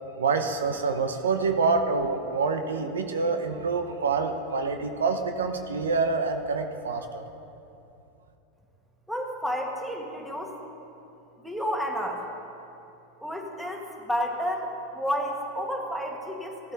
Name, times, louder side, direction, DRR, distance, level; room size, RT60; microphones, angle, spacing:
voice 1, 0.2-7.3, right 4 dB, 90° right, 6 dB, 0.8 m, -26 dB
voice 2, 9.1-10.5 11.4-12.2 13.2-16.7, equal, ahead, 0 dB, 1.7 m, -31 dB
15.5 x 8.6 x 4.1 m, 2.8 s
hypercardioid pair, 100°, 0 cm